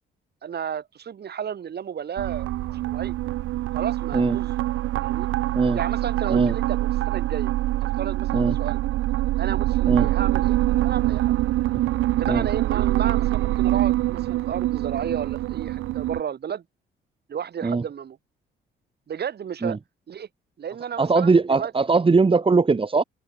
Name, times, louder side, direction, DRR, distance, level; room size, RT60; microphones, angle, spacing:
voice 1, 0.4-2.5 2.9-3.2 3.7-4.5 5.0-5.3 5.7-7.5 8.0-8.8 9.4-10.6 10.8-11.3 12.2-16.6 17.3-18.2 19.1-19.8 20.1-20.3 20.6-21.7, right 8 dB, 55° right, 5.9 m, -32 dB
sound 1, 2.2-16.2, right 16 dB, 85° right, 1.2 m, -24 dB
voice 2, 21.0-23.0, right 4 dB, 25° right, 2.3 m, -20 dB
cardioid pair, 90°, 20 cm